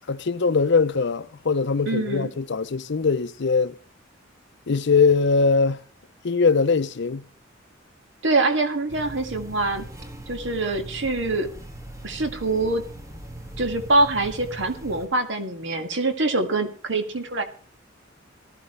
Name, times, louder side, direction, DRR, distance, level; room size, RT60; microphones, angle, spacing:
voice 1, 0.1-3.7 4.7-5.8 6.2-7.2, left 4 dB, 60° left, 0.6 m, -21 dB
voice 2, 1.9-2.3 8.2-9.9 10.3-11.5 12.0-12.8 13.6-17.4, right 2 dB, 65° right, 2.0 m, -24 dB
sound 1, 8.9-15.1, right 1 dB, 15° right, 1.4 m, -40 dB
18.0 x 13.5 x 3.2 m
head